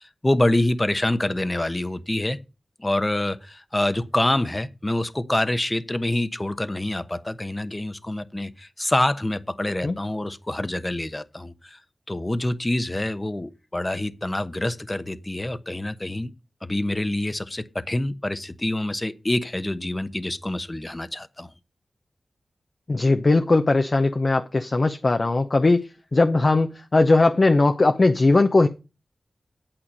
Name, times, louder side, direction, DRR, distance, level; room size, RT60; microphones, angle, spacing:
voice 1, 0.0-2.4 2.8-11.8 12.1-16.3 16.6-21.5, left 1 dB, 25° left, 1.0 m, -26 dB
voice 2, 22.9-25.9 26.1-28.7, left 2 dB, 50° left, 0.8 m, -19 dB
8.9 x 8.3 x 5.3 m
cardioid pair, 50°, 0 cm